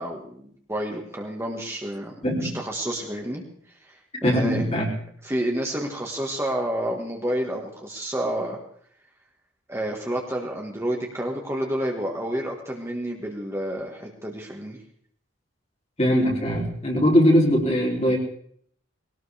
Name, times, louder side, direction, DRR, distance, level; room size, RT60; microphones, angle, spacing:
voice 1, 0.0-2.1 2.4-4.6 5.2-8.6 9.7-14.8, right 1 dB, 15° right, 0 dB, 1.6 m, -30 dB
voice 2, 4.2-4.9 16.0-18.2, equal, 30° left, 0 dB, 3.2 m, -20 dB
20.5 x 17.5 x 3.4 m, 0.62 s
head